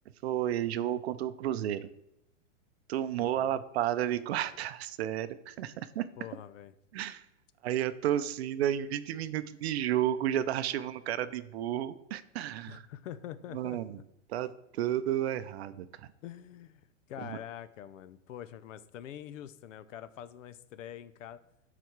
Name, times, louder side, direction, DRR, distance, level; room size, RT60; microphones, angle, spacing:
voice 1, 0.2-1.9 2.9-6.1 6.9-7.3 7.6-12.9 13.5-14.0 14.3-16.1 17.2-17.4, right 11 dB, 55° right, 13 dB, 0.5 m, -32 dB
voice 2, 3.2-3.6 6.2-6.7 12.7-13.8 16.2-21.4, left 10 dB, 70° left, 15 dB, 0.7 m, -45 dB
12.0 x 4.2 x 4.6 m, 0.82 s
supercardioid pair, 160°, 39 cm